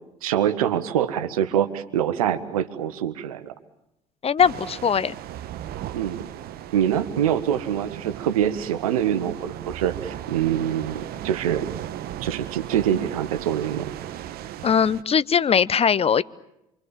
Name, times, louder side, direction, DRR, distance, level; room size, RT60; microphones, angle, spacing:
voice 1, 0.2-3.5 5.9-6.3 6.7-11.7 12.2-13.9, right 10 dB, 80° right, 12 dB, 1.5 m, -25 dB
voice 2, 4.2-5.1 14.6-16.2, left 7 dB, 35° left, 19 dB, 0.9 m, -20 dB
sound 1, 4.4-15.0, right 12 dB, 60° right, 1.4 m, -36 dB
28.0 x 24.0 x 7.3 m, 0.84 s
hypercardioid pair, 60°, 18 cm